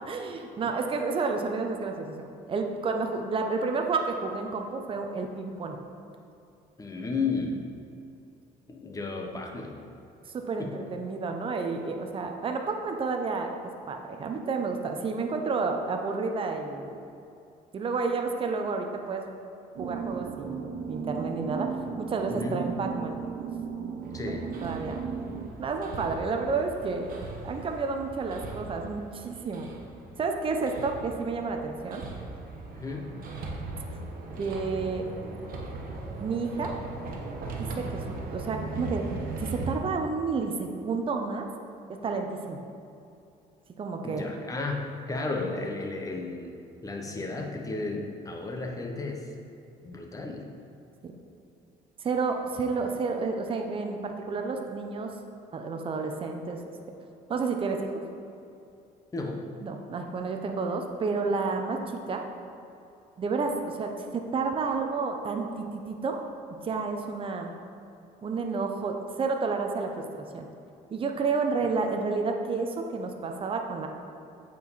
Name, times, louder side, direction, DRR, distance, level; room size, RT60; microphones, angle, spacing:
voice 1, 0.1-5.8 10.5-13.5 13.9-17.0 17.7-19.3 19.8-20.6 20.9-23.2 24.3-24.4 24.6-25.0 25.6-27.1 27.4-29.7 30.2-32.0 34.4-35.1 36.2-36.7 37.6-39.1 39.4-41.5 41.9-42.6 43.8-44.3 51.0-51.1 52.0-55.1 55.5-56.6 57.3-57.9 59.6-62.2 63.2-66.2 66.6-67.5 68.2-70.5 70.9-73.9, right 4 dB, 30° right, 3 dB, 0.7 m, -30 dB
voice 2, 6.8-7.6 8.7-9.7 10.6-10.7 22.3-22.6 24.1-24.5 32.7-33.1 44.0-46.6 46.8-49.3 49.8-50.5 59.1-59.4, left 3 dB, 20° left, 2 dB, 0.9 m, -33 dB
sound 1, 19.7-25.5, right 6 dB, 75° right, 0.7 m, -35 dB
Hammer, 24.0-39.7, right 3 dB, 60° right, 1.1 m, -39 dB
8.2 x 4.7 x 4.1 m, 2.7 s
cardioid pair, 110°, 17 cm